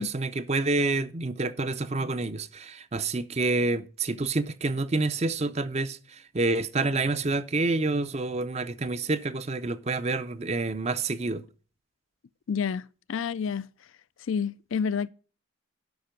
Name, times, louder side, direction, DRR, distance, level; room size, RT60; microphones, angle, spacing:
voice 1, 0.0-11.4, right 3 dB, 30° right, 0.6 m, -28 dB
voice 2, 12.5-13.7 14.3-15.1, left 6 dB, 70° left, 0.4 m, -29 dB
12.0 x 5.8 x 5.1 m
head